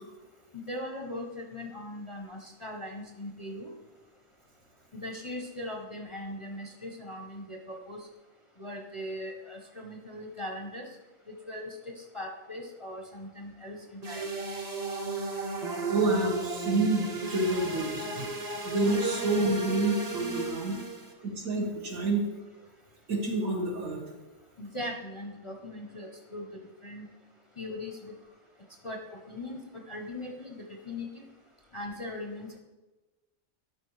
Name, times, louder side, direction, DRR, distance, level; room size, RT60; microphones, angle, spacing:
voice 1, 0.7-3.7 4.9-8.0 8.6-10.9 11.3-11.8 12.1-13.8 14.1-14.3 24.6-26.5 26.8-27.1 27.6-28.1 28.8-29.0 29.3-29.6 29.9-31.2 31.7-32.5, left 1 dB, 30° left, 1 dB, 0.6 m, -39 dB
sound 1, 14.0-21.1, right 3 dB, 35° right, 0.8 m, -35 dB
voice 2, 15.9-18.3 18.6-20.8 21.2-22.2 23.1-24.0, right 2 dB, 85° right, -1 dB, 2.0 m, -28 dB
12.5 x 5.2 x 3.2 m, 1.2 s
omnidirectional pair, 1.4 m